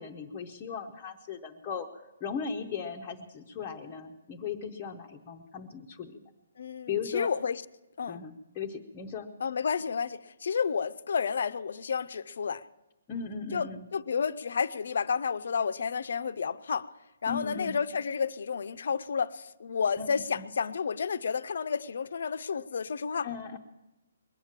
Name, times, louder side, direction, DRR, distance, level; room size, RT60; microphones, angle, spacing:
voice 1, 0.0-6.3 6.9-7.3 8.0-9.3 13.1-13.9 17.3-17.8 20.0-20.1 20.3-20.5 23.2-23.6, left 6 dB, 15° left, 0 dB, 0.6 m, -37 dB
voice 2, 6.6-7.6 8.0-8.2 9.4-12.6 13.5-13.7 13.9-16.9 17.2-23.3, left 6 dB, 60° left, 14 dB, 0.5 m, -31 dB
21.0 x 8.8 x 7.4 m, 1.0 s
hypercardioid pair, 175°, 0 cm